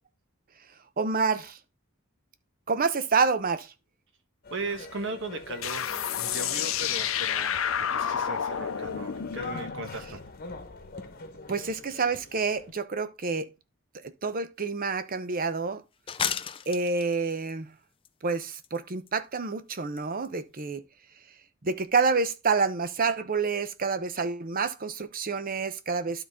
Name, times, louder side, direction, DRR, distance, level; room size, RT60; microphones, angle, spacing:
voice 1, 1.0-1.6 2.7-3.7 11.5-13.5 14.2-15.8 16.7-17.7 18.2-20.8 21.6-26.2, right 4 dB, 45° right, 0.7 m, -28 dB
sound 1, 4.4-12.7, left 3 dB, 45° left, 1.1 m, -43 dB
voice 2, 4.5-7.6 7.9-10.2, right 3 dB, 60° right, 1.4 m, -37 dB
sound 2, 5.6-10.9, left 8 dB, 70° left, 0.6 m, -30 dB
sound 3, 14.6-14.7 15.1-15.2 16.1-17.5 18.1-19.1 19.4-19.5 19.7-20.0 20.2-20.3 20.6-20.7, left 8 dB, 25° left, 0.4 m, -33 dB
12.0 x 4.0 x 3.6 m
head